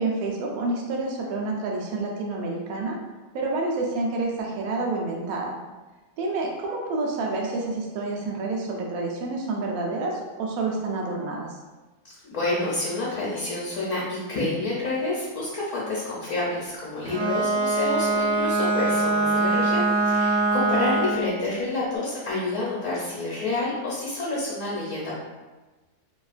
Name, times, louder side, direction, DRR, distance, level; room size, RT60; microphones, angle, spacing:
voice 1, 0.0-3.0 3.3-5.5 6.2-11.6, right 3 dB, 80° right, -1 dB, 1.0 m, -28 dB
voice 2, 12.2-25.1, left 2 dB, 60° left, -6 dB, 0.9 m, -28 dB
Bowed string instrument, 17.0-21.3, right 2 dB, 40° right, 0.4 m, -23 dB
2.9 x 2.3 x 2.4 m, 1.2 s
omnidirectional pair, 1.6 m